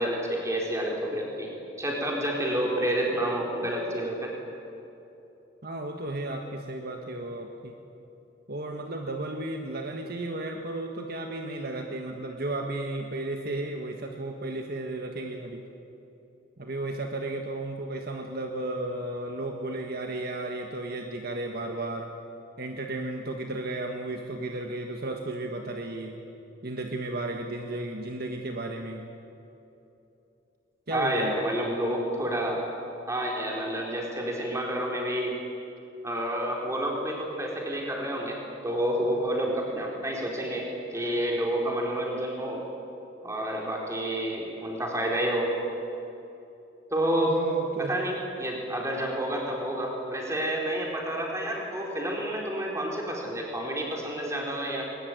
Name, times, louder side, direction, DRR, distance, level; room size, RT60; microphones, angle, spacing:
voice 1, 0.0-1.5 1.8-4.3 30.9-32.6 33.1-35.3 36.0-38.4 38.6-42.6 43.2-45.5 46.9-47.4 47.8-54.8, right 1 dB, 15° right, -1 dB, 4.3 m, -29 dB
voice 2, 5.6-7.7 8.5-15.6 16.6-22.1 22.6-26.2 26.6-29.1 30.9-31.3 47.3-47.9, right 2 dB, 50° right, 3 dB, 1.6 m, -34 dB
22.0 x 20.0 x 9.4 m, 2.9 s
head